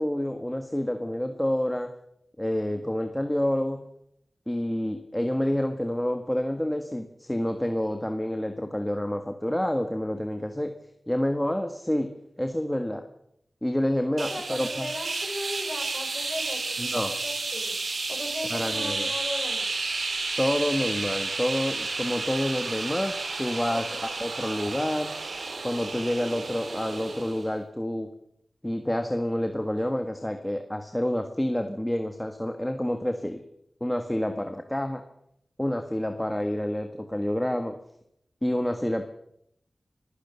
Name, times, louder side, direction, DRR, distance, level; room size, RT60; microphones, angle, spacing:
voice 1, 0.0-1.9 2.4-3.9 4.5-10.7 11.1-13.0 13.6-14.9 16.8-17.1 18.5-19.1 20.4-25.1 25.6-28.1 28.6-33.4 33.8-35.0 35.6-37.8 38.4-39.1, left 1 dB, 10° left, 6 dB, 1.6 m, -28 dB
voice 2, 14.2-17.8 18.1-19.7 23.7-23.8, left 1 dB, 30° left, 2 dB, 7.1 m, -37 dB
sound 1, 14.2-27.5, right 3 dB, 80° right, 3.1 m, -32 dB
25.5 x 15.5 x 7.0 m, 0.76 s
wide cardioid pair, 60°, 0 cm